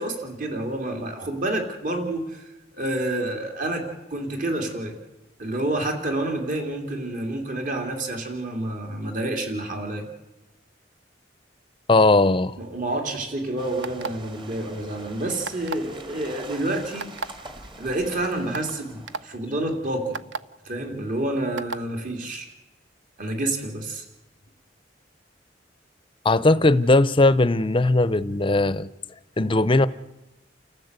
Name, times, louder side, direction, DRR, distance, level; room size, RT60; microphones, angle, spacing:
voice 1, 0.0-5.0 5.4-10.0 12.6-17.1 17.8-20.2 20.6-22.5 23.2-24.0, right 1 dB, 50° right, 3.2 m, -29 dB
voice 2, 11.9-12.6 26.2-28.9 29.4-29.9, left 2 dB, 30° left, 0.7 m, -18 dB
sound 1, 13.6-19.2, right 2 dB, 30° right, 2.1 m, -44 dB
sound 2, 13.8-14.3 15.4-15.9 17.0-17.3 18.0-18.1 18.5-18.7 19.1-19.2 20.1-20.4 21.6-21.8, right 4 dB, 90° right, 0.7 m, -31 dB
29.5 x 14.5 x 8.2 m
head